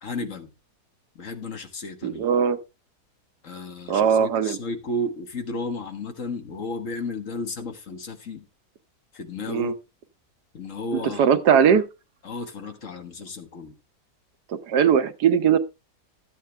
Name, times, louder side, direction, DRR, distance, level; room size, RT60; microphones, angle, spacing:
voice 1, 0.0-0.5 1.1-2.3 3.4-8.5 9.1-9.7 10.5-11.4 12.2-13.7, left 2 dB, 50° left, 1.7 m, -33 dB
voice 2, 2.0-2.6 3.9-4.6 9.5-9.7 11.2-11.8 14.7-15.6, right 7 dB, 80° right, 1.5 m, -19 dB
13.0 x 8.4 x 3.3 m
omnidirectional pair, 1.7 m